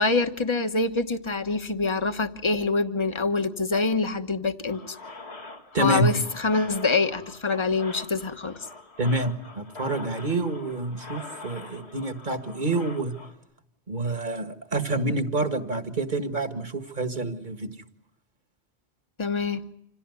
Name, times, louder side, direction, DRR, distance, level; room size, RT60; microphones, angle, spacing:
voice 1, 0.0-5.0 5.8-8.5 19.2-19.6, left 3 dB, 30° left, 9 dB, 1.2 m, -25 dB
sound 1, 4.7-13.3, left 3 dB, 85° left, 2.6 m, -44 dB
voice 2, 5.7-6.1 9.0-13.1 13.9-17.7, right 2 dB, 45° right, 8 dB, 2.0 m, -27 dB
27.0 x 17.5 x 9.6 m, 0.78 s
omnidirectional pair, 1.1 m